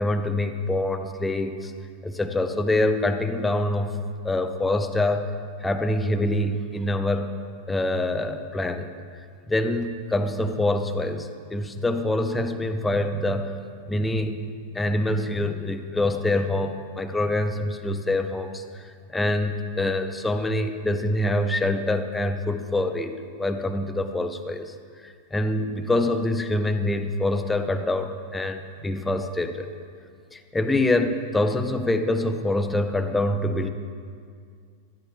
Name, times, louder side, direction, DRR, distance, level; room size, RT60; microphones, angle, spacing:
voice 1, 0.0-1.7 2.0-4.0 4.2-5.3 5.6-7.3 7.7-8.9 9.5-13.5 13.9-14.5 14.7-24.7 25.0-29.7 30.3-33.7, left 1 dB, 10° left, 7 dB, 0.6 m, -25 dB
17.0 x 11.5 x 2.3 m, 2.2 s
figure-of-eight pair, 90°, 0 cm